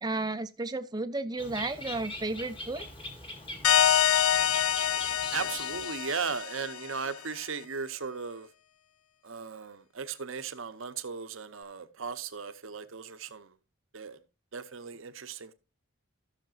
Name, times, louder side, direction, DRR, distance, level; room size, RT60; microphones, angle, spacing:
voice 1, 0.0-2.9, right 2 dB, 20° right, 0.6 m, -33 dB
Bird, 1.4-6.2, left 2 dB, 25° left, 1.9 m, -43 dB
sound 1, 3.6-7.1, left 10 dB, 75° left, 0.4 m, -26 dB
voice 2, 5.3-8.5 9.2-13.5 13.9-14.2 14.5-15.5, right 5 dB, 60° right, 0.8 m, -37 dB
15.0 x 6.6 x 2.5 m
head